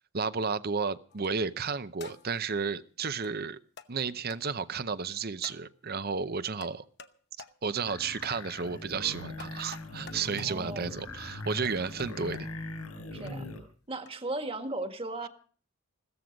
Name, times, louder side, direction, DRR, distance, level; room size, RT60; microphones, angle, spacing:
voice 1, 0.1-3.6 3.9-6.9 7.6-12.5, right 5 dB, 45° right, 0.7 m, -32 dB
sound 1, 1.1-1.4 2.0-2.4 3.2-3.3 3.8-3.9 4.3-4.4 5.4-5.7 6.6-7.1 7.4-7.6 8.2-8.4 9.4-10.6 11.6-12.4 13.3-13.4 14.1-14.2, left 5 dB, 50° left, 0.9 m, -48 dB
sound 2, 7.9-13.7, left 2 dB, 85° left, 6.4 m, -41 dB
voice 2, 10.4-10.9 13.1-13.5 13.9-15.3, right 2 dB, 25° right, 1.6 m, -36 dB
16.0 x 14.0 x 5.2 m
head